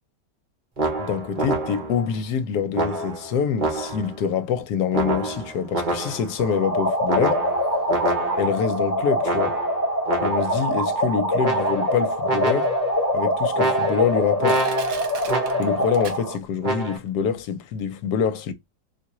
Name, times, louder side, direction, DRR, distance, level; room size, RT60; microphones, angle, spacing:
low trombone blips, 0.8-2.1 2.7-4.2 4.9-6.4 7.1-8.7 9.2-10.7 11.4-12.0 12.2-13.0 13.5-15.9 16.6-17.0, right 2 dB, 30° right, 1.0 m, -27 dB
voice 1, 1.0-7.4 8.4-9.6 10.2-12.7 13.1-14.7 15.6-18.5, left 7 dB, 70° left, 1.2 m, -25 dB
sound 1, 6.4-16.4, equal, 10° left, 1.6 m, -24 dB
Crushing, 13.1-13.2 13.9-14.0 14.4-16.6 17.0-17.1, right 6 dB, 70° right, 1.4 m, -38 dB
3.5 x 3.0 x 2.9 m
omnidirectional pair, 1.9 m